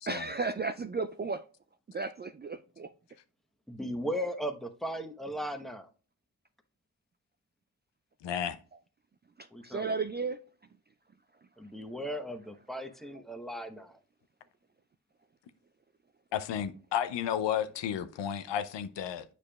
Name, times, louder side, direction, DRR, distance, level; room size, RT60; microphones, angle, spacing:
voice 1, 0.1-1.4 1.9-2.9 9.4-10.4, right 4 dB, 25° right, 0.4 m, -34 dB
voice 2, 3.7-5.9 9.5-9.9 11.6-14.0, equal, ahead, 1.0 m, -37 dB
voice 3, 8.2-8.6 16.3-19.2, left 9 dB, 75° left, 0.6 m, -32 dB
8.4 x 4.9 x 2.3 m
supercardioid pair, 40°, 44 cm